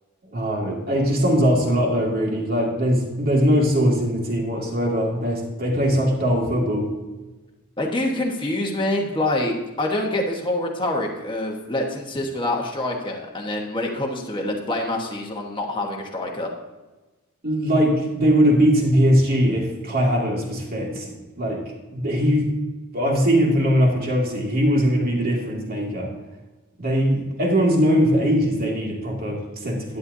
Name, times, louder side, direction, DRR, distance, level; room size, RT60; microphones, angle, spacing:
voice 1, 0.3-6.9 17.4-21.6 21.9-22.5 22.9-26.1 26.8-30.0, equal, 40° right, -2 dB, 2.5 m, -21 dB
voice 2, 7.8-16.5, left 1 dB, 20° left, 0 dB, 1.4 m, -26 dB
11.0 x 10.5 x 2.8 m, 1.2 s
head